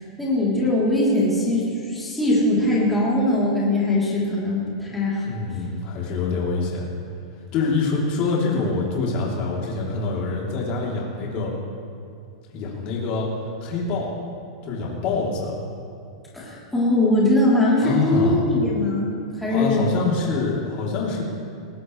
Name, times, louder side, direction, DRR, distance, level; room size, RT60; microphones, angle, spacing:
voice 1, 0.2-5.2 5.5-5.6 16.3-19.1 19.4-19.8, left 1 dB, 5° left, -8 dB, 3.5 m, -21 dB
voice 2, 5.2-6.9 7.5-11.5 12.5-13.3 13.6-14.1 14.6-15.6 17.8-18.4 19.5-21.2, left 4 dB, 35° left, -4 dB, 3.4 m, -25 dB
20.0 x 19.0 x 3.3 m, 2.4 s
supercardioid pair, 160°, 3 cm